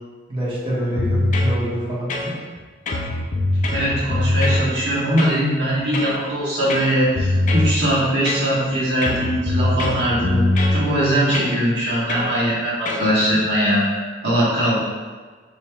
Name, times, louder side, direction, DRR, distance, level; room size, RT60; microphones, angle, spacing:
voice 1, 0.3-2.3, right 1 dB, 30° right, -9 dB, 1.2 m, -26 dB
sound 1, 1.0-1.6 2.1-2.6 2.9-4.6 5.2-5.4 5.9-6.2 6.7-7.8 8.3-8.7 9.0-10.8 11.3-11.6 12.1-12.3 12.9-13.1, left 2 dB, 45° left, 0.4 m, -22 dB
voice 2, 3.7-10.4 10.7-13.8 14.2-14.8, equal, 85° right, -7 dB, 1.3 m, -21 dB
4.9 x 3.0 x 2.2 m, 1.4 s
head